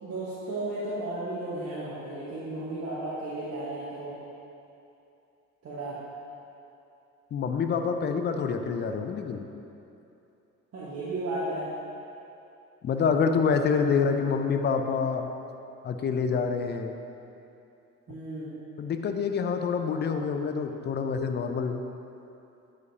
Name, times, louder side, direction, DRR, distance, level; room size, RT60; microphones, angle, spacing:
voice 1, 0.0-4.1 5.6-6.0 10.7-11.7 18.1-18.5, right 2 dB, 35° right, -10 dB, 1.5 m, -34 dB
voice 2, 7.3-9.4 12.8-15.3 15.8-17.0 18.8-21.8, left 5 dB, 25° left, 6 dB, 0.5 m, -27 dB
9.0 x 5.1 x 2.8 m, 2.8 s
figure-of-eight pair, 55°, 43 cm